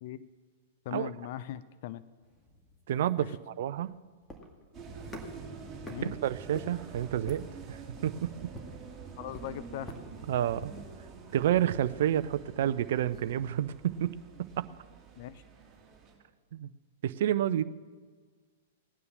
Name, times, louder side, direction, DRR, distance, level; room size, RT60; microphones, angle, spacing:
voice 1, 0.9-2.0 3.2-3.3 5.9-6.1 9.2-9.9 15.2-15.4, left 12 dB, 50° left, 15 dB, 0.6 m, -39 dB
sound 1, 2.2-10.9, equal, 10° left, 2.3 m, -48 dB
voice 2, 2.9-4.0 6.0-8.5 10.3-10.7 11.3-14.7 16.5-16.7 17.0-17.6, right 11 dB, 60° right, 14 dB, 0.5 m, -30 dB
sound 2, 4.7-16.1, right 5 dB, 15° right, 3.8 m, -47 dB
17.5 x 9.6 x 7.4 m, 1.6 s
figure-of-eight pair, 105°, 0 cm